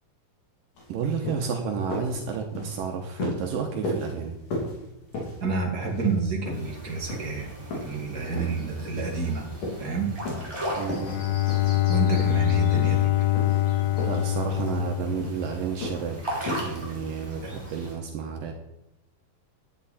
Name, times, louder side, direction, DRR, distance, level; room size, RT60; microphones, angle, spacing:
sound 1, 0.8-0.9 1.2-1.5 1.9-2.2 2.5-2.8 3.2-3.5 3.8-4.1 4.5-4.8 5.1-5.4 5.8-6.2 6.4-6.7 7.1-7.3 7.7-8.0 8.4-8.6 9.0-9.3 9.6-9.9 10.2-10.5 10.8-11.2 11.5-11.8 12.1-12.4 12.7-13.0 13.3-13.6 14.0-14.3 14.5-14.8 15.2-15.5 15.8-16.1 16.5-16.7, left 1 dB, 60° left, 4.3 m, -34 dB
voice 1, 0.9-4.4 10.8-11.2 14.0-16.2 16.6-18.5, right 6 dB, 75° right, 3 dB, 2.5 m, -31 dB
voice 2, 5.4-7.5 7.7-9.5 9.8-10.1 11.9-13.3 17.4-17.5, right 4 dB, 35° right, 0 dB, 1.7 m, -29 dB
sound 2, 6.5-17.9, right 1 dB, 5° right, 4.0 m, -38 dB
Bowed string instrument, 10.8-15.8, left 16 dB, 85° left, 1.8 m, -25 dB
11.0 x 10.0 x 4.2 m, 0.89 s
omnidirectional pair, 4.2 m